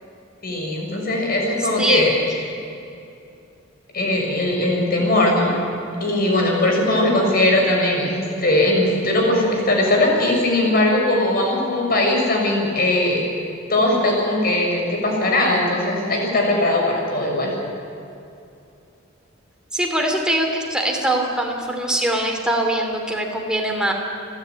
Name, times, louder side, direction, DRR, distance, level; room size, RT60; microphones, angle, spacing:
voice 1, 0.4-2.1 3.9-5.5 6.0-13.2 13.7-17.5, left 1 dB, 50° left, 0 dB, 5.4 m, -19 dB
voice 2, 1.8-2.1 19.7-23.9, right 1 dB, 5° right, 1 dB, 2.7 m, -22 dB
29.5 x 11.0 x 9.1 m, 2.6 s
head